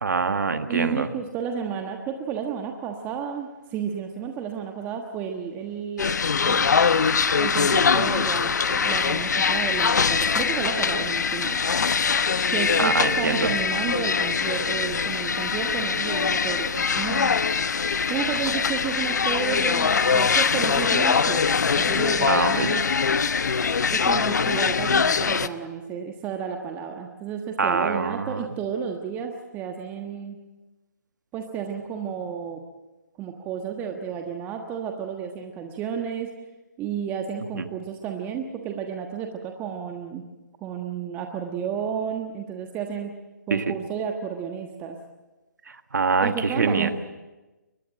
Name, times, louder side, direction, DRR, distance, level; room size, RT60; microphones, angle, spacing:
voice 1, 0.0-1.1 12.8-13.5 22.3-22.7 27.6-28.5 37.5-37.6 43.5-43.6 45.7-46.9, right 4 dB, 70° right, 9 dB, 1.6 m, -24 dB
voice 2, 0.7-6.2 6.4-6.7 7.4-11.6 12.5-17.3 18.1-22.8 23.9-30.4 31.3-32.6 33.2-36.3 36.8-40.3 40.6-43.1 43.5-45.0 46.2-46.9, right 7 dB, 20° right, 3 dB, 1.3 m, -32 dB
sound 1, 6.0-25.5, left 5 dB, 65° left, 0.9 m, -23 dB
23.5 x 19.5 x 7.7 m, 1.1 s
figure-of-eight pair, 140°, 10 cm